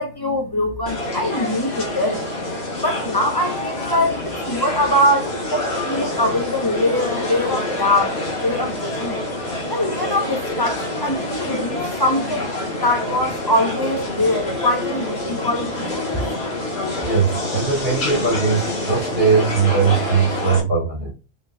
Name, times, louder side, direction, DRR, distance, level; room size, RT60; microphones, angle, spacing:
voice 1, 0.0-2.3 2.8-9.2 9.7-16.3, left 1 dB, 20° left, 0.9 m, -22 dB
sound 1, 0.9-20.6, left 1 dB, 65° left, 1.8 m, -27 dB
voice 2, 17.0-21.1, right 5 dB, 55° right, 3.2 m, -20 dB
5.5 x 3.9 x 2.3 m
omnidirectional pair, 1.2 m